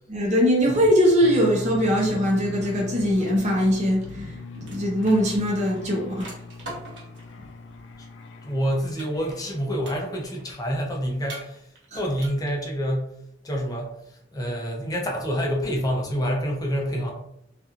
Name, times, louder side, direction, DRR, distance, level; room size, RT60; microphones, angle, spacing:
voice 1, 0.1-6.3 11.9-12.0, equal, 40° right, -2 dB, 0.7 m, -21 dB
sound 1, 1.2-10.8, left 3 dB, 90° left, 0.4 m, -39 dB
sound 2, 4.1-4.3 4.5-7.3 9.0-9.5 9.8-10.4 11.2-11.8 12.1-12.7, right 2 dB, 90° right, 1.0 m, -42 dB
voice 2, 8.4-11.6 11.9-13.1 13.4-14.0 14.3-17.1, equal, 20° left, -1 dB, 0.6 m, -27 dB
2.9 x 2.4 x 2.4 m, 0.76 s
head